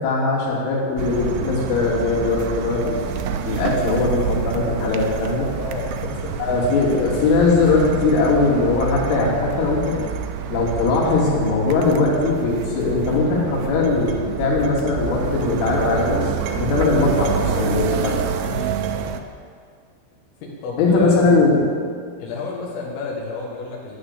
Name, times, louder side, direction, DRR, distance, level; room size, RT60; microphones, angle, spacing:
voice 1, 0.0-3.0 3.5-5.5 6.4-10.1 10.5-18.2 20.8-21.7, left 3 dB, 70° left, -4 dB, 5.3 m, -20 dB
sound 1, 1.0-19.2, right 7 dB, 80° right, 2.9 m, -27 dB
voice 2, 5.6-6.4 18.4-18.8 20.4-21.2 22.2-24.0, left 3 dB, 90° left, -4 dB, 4.3 m, -31 dB
12.5 x 10.5 x 8.3 m, 2.1 s
omnidirectional pair, 5.8 m